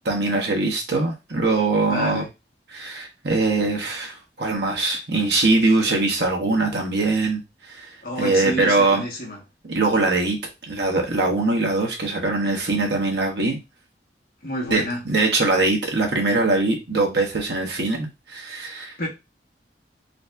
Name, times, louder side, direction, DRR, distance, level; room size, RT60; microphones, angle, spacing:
voice 1, 0.0-2.2 2.7-7.9 8.2-9.0 9.6-13.6 14.7-19.0, right 3 dB, 70° right, 1.3 m, -22 dB
voice 2, 1.9-2.3 8.0-9.4 14.4-15.0 18.7-19.1, equal, 55° left, 1.7 m, -29 dB
4.1 x 2.7 x 3.5 m
head